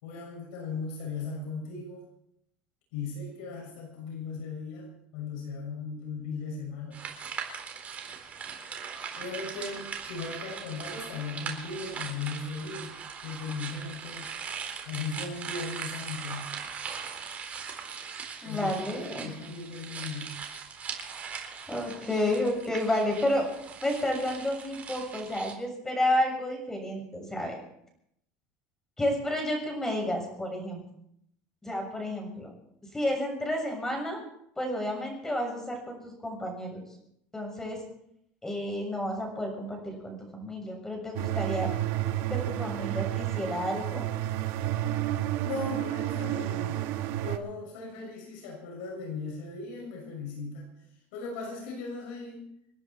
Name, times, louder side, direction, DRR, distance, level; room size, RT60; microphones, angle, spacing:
voice 1, 0.0-2.0 2.9-7.0 9.2-13.0 13.2-14.3 14.8-16.5 18.4-20.3 45.4-46.9 47.2-50.7 51.1-52.4, left 4 dB, 80° left, 0 dB, 6.5 m, -37 dB
sound 1, 6.9-25.5, right 6 dB, 30° right, 3.9 m, -40 dB
voice 2, 18.4-19.3 21.7-23.5 23.8-27.6 29.0-30.8 31.6-32.5 32.9-34.2 34.5-36.8 37.3-37.8 38.4-41.7 42.3-44.1, left 1 dB, 10° left, 2 dB, 6.8 m, -31 dB
sound 2, 41.1-47.4, right 13 dB, 65° right, 1.5 m, -31 dB
28.5 x 10.5 x 4.5 m, 0.74 s
supercardioid pair, 130°, 5 cm